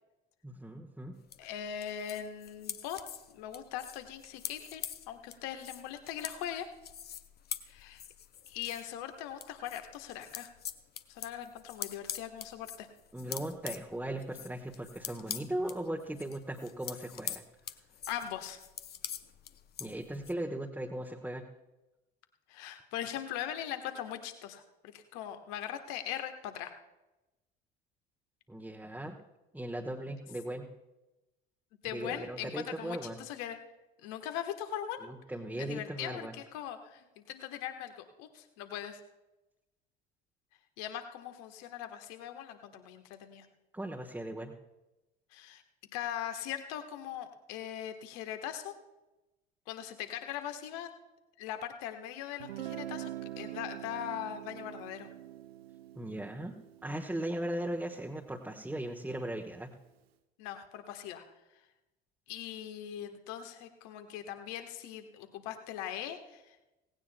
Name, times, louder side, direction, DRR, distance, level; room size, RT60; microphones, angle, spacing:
voice 1, 0.4-1.2 13.1-17.4 19.8-21.4 28.5-29.2 29.5-30.7 31.9-33.2 35.0-36.3 43.7-44.5 56.0-59.7, right 1 dB, 5° right, 0 dB, 1.2 m, -38 dB
sound 1, 1.3-8.9 9.3-20.3, left 9 dB, 30° left, 0.7 m, -44 dB
voice 2, 1.4-3.0 3.3-6.7 7.7-8.0 8.5-10.5 11.1-12.9 18.1-18.6 22.5-26.7 31.8-33.6 34.0-35.1 35.6-39.0 40.8-43.5 45.3-45.6 45.9-48.7 49.7-50.9 51.4-53.1 53.4-55.1 60.4-61.2 62.3-66.5, left 10 dB, 55° left, 7 dB, 1.3 m, -40 dB
Guitar, 52.4-58.2, right 13 dB, 75° right, 0.7 m, -45 dB
17.5 x 16.5 x 2.2 m, 1.0 s
figure-of-eight pair, 55°, 31 cm